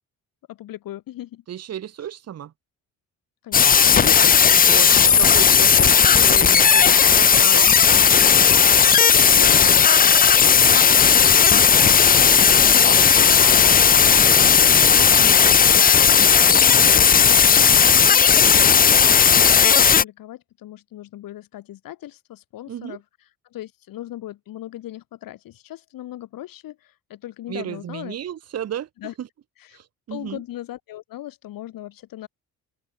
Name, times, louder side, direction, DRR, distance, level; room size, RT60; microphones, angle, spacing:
voice 1, 0.5-1.4 3.4-4.5 6.8-7.2 8.9-9.6 16.4-17.1 17.9-28.1 29.0-29.1 29.6-29.8 30.1-32.3, left 14 dB, 80° left, 6.3 m, -38 dB
voice 2, 1.5-2.5 4.5-6.8 7.1-8.7 9.0-9.9 11.2-15.4 16.1-17.3 22.7-23.0 27.5-28.9 29.2-29.3 29.7-30.4, right 10 dB, 50° right, 1.4 m, -35 dB
sound 1, 3.5-20.0, left 7 dB, 25° left, 0.6 m, -14 dB
open air
cardioid pair, 130°, 34 cm